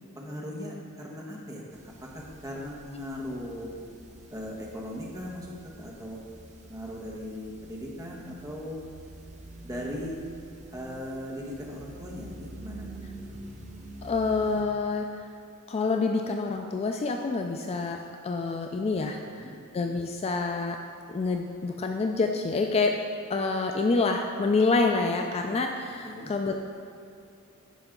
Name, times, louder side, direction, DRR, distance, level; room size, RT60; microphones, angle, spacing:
voice 1, 0.1-3.7 4.3-6.2 6.6-8.8 9.6-10.2 10.7-13.2 19.2-19.6 26.0-26.3, equal, 15° right, -3 dB, 1.2 m, -38 dB
sound 1, 1.7-14.6, right 1 dB, 35° right, 1.0 m, -47 dB
voice 2, 14.0-15.3 15.7-20.8 21.1-23.0 23.3-26.6, left 3 dB, 30° left, 4 dB, 0.3 m, -27 dB
10.5 x 5.4 x 3.8 m, 2.5 s
head